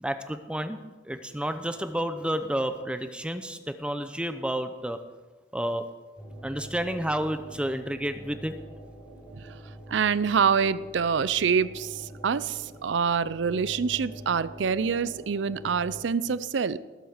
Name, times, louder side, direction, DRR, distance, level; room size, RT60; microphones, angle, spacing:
voice 1, 0.0-5.0 5.5-5.9 6.4-8.5, right 1 dB, 5° right, 9 dB, 0.6 m, -30 dB
sound 1, 6.2-16.0, right 1 dB, 15° left, 4.5 m, -45 dB
voice 2, 9.9-16.8, right 6 dB, 75° right, 17 dB, 0.5 m, -26 dB
19.5 x 7.9 x 6.5 m, 1.3 s
head